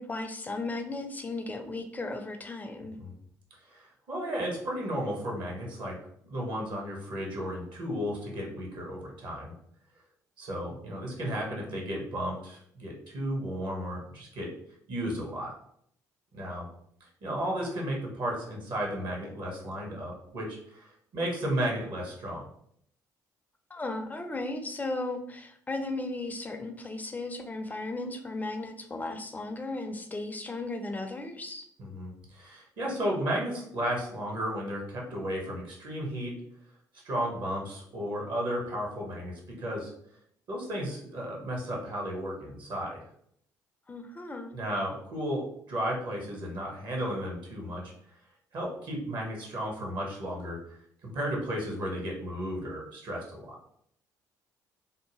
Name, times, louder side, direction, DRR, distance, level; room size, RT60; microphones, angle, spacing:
voice 1, 0.0-3.0 23.7-31.6 43.9-44.5, left 2 dB, 15° left, 6 dB, 0.5 m, -36 dB
voice 2, 3.7-6.0 6.2-9.5 10.4-14.5 14.9-15.5 16.3-16.7 17.2-22.5 31.8-36.3 37.0-39.9 40.5-43.0 44.5-47.9 48.5-53.6, equal, 55° right, -1 dB, 1.0 m, -34 dB
2.7 x 2.1 x 3.1 m, 0.69 s
figure-of-eight pair, 50°, 9 cm